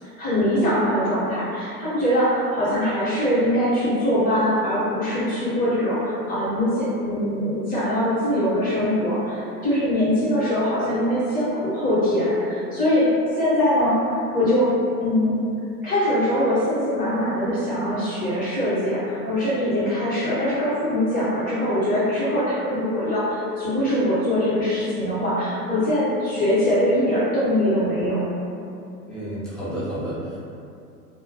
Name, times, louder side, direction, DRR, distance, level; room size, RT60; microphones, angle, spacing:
voice 1, 0.0-13.1 13.3-14.7 15.0-15.4 15.8-28.4, equal, 20° left, -10 dB, 0.9 m, -22 dB
voice 2, 29.1-30.4, right 1 dB, ahead, -13 dB, 0.5 m, -30 dB
2.3 x 2.1 x 2.7 m, 2.6 s
figure-of-eight pair, 100°, 47 cm